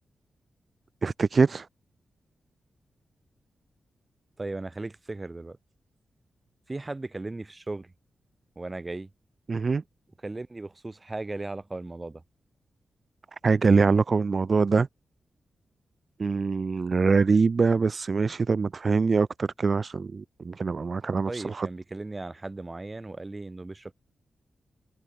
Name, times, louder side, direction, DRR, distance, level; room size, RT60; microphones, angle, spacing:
voice 1, 1.0-1.7 9.5-9.8 13.3-14.9 16.2-21.7, right 4 dB, 35° right, 0.5 m, -24 dB
voice 2, 4.4-5.6 6.7-7.9 8.5-9.1 10.2-12.2 21.3-23.9, right 2 dB, 20° right, 5.1 m, -36 dB
wide cardioid pair, 160°, 0 cm